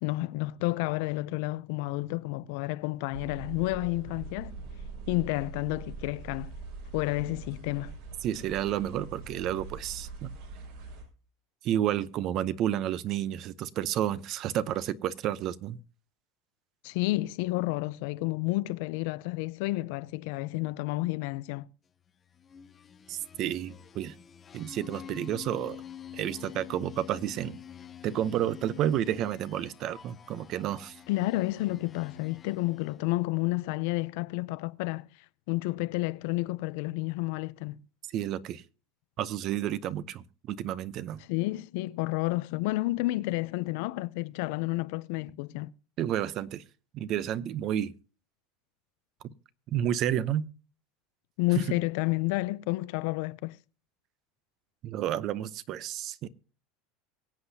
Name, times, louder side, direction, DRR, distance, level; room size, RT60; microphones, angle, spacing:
voice 1, 0.0-4.5 5.1-6.5 6.9-7.9 16.8-21.7 31.1-35.1 35.5-37.8 41.3-45.7 51.4-53.6, left 20 dB, 70° left, 0.5 m, -30 dB
sound 1, 3.1-11.0, right 4 dB, 70° right, 5.5 m, -43 dB
voice 2, 8.2-10.3 11.6-15.8 23.1-24.2 24.5-25.8 26.1-27.6 28.0-31.0 38.1-38.6 39.2-41.2 46.0-46.6 46.9-47.9 49.7-50.5 51.6-51.7 54.8-56.3, right 11 dB, 45° right, 0.7 m, -31 dB
sound 2, 22.3-33.2, left 8 dB, 25° left, 0.7 m, -48 dB
23.5 x 8.0 x 2.8 m
supercardioid pair, 140°, 0 cm